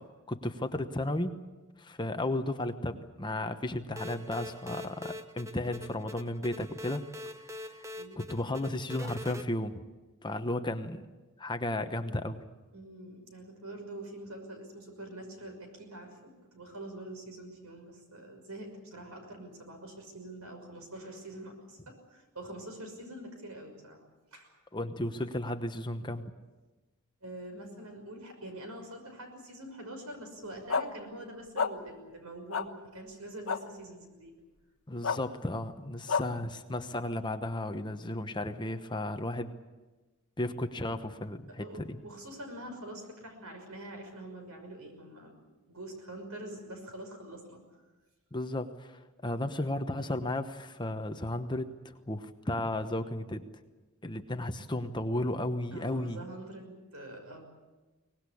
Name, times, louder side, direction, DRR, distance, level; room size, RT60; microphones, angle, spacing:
voice 1, 0.3-1.4 1.8-7.0 8.2-9.8 10.2-11.0 11.4-12.4 24.7-26.2 34.9-39.5 40.4-42.0 48.3-53.4 54.0-56.2, left 1 dB, 20° left, 8 dB, 1.0 m, -34 dB
sound 1, 4.0-9.4, left 1 dB, 15° right, 0.8 m, -44 dB
voice 2, 8.0-8.4 12.7-24.0 24.3-24.5 27.2-34.3 41.5-45.3 45.7-47.6 55.7-57.4, right 1 dB, 80° right, 5 dB, 6.0 m, -45 dB
sound 2, 30.7-30.8 31.6-31.7 32.5-32.6 33.5-33.6 35.0-35.2 36.1-36.2, left 5 dB, 65° left, 1.2 m, -28 dB
23.5 x 19.5 x 8.5 m, 1.2 s
head